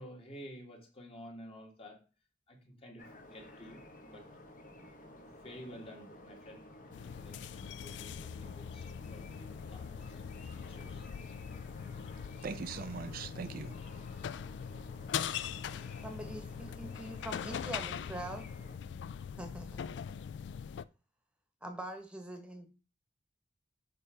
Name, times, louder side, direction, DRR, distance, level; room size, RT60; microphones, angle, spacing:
voice 1, 0.0-2.0 2.5-4.3 5.1-6.7 6.9-10.4 10.7-11.1, equal, 30° left, 1.6 m, -52 dB
sound 1, 3.0-18.8, left 1 dB, 50° left, 1.2 m, -53 dB
sound 2, 6.9-20.8, left 8 dB, 70° left, 0.3 m, -42 dB
voice 2, 12.4-13.8, right 5 dB, 50° right, 0.4 m, -40 dB
voice 3, 16.0-18.5 19.4-20.0 21.6-22.7, right 1 dB, 5° right, 1.1 m, -43 dB
6.7 x 3.4 x 4.9 m
head